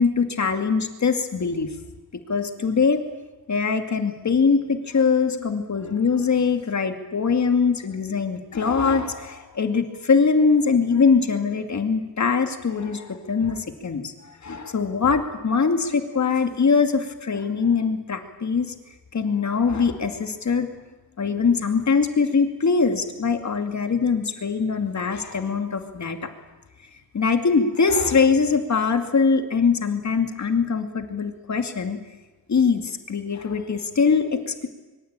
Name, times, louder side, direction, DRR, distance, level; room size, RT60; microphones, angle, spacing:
voice 1, 0.0-1.7 2.3-3.0 3.5-14.1 14.4-18.7 19.1-20.7 21.2-26.3 27.1-32.0 32.5-34.7, left 5 dB, 50° left, 6 dB, 2.4 m, -22 dB
25.5 x 23.5 x 8.9 m, 1.1 s
wide cardioid pair, 175°, 36 cm